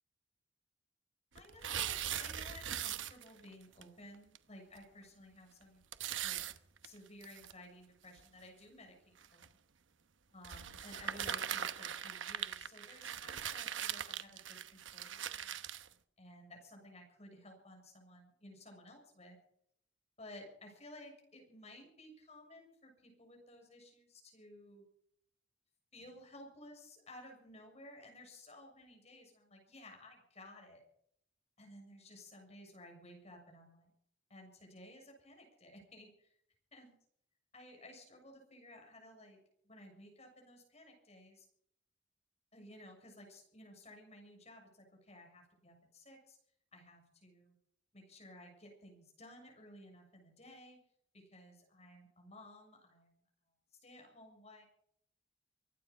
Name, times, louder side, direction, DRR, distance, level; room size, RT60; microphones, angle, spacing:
voice 1, 1.3-5.8 6.2-6.4 6.8-9.6 10.3-15.6 16.2-19.4 20.2-24.8 25.9-30.8 31.6-33.9 34.3-36.3 36.7-36.9 37.5-39.4 39.6-41.5 42.5-46.4 46.7-47.6 47.9-50.8 51.1-53.2 53.8-54.6, left 1 dB, 35° left, 2 dB, 7.0 m, -56 dB
sound 1, 1.3-3.5 3.8-3.9 4.3-4.4 4.8-4.9 5.9-7.5 8.2-8.3 9.2-9.5 10.4-15.9, right 9 dB, 80° right, 1.0 m, -40 dB
24.5 x 10.0 x 5.5 m, 0.68 s
head